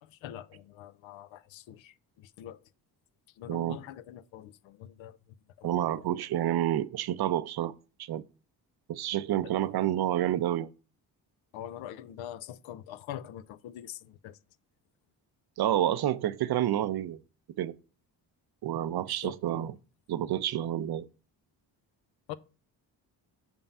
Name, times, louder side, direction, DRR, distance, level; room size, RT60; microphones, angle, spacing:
voice 1, 0.0-2.6 3.4-6.1 9.4-9.5 11.5-14.4 19.2-19.7 22.3-22.4, left 11 dB, 75° left, 0.6 m, -44 dB
voice 2, 3.5-3.8 5.6-7.7 8.0-8.2 8.9-10.7 15.6-17.2 17.6-17.7 18.6-19.7 20.1-21.1, right 12 dB, 55° right, 0.5 m, -29 dB
5.8 x 3.5 x 5.3 m
supercardioid pair, 50°, 47 cm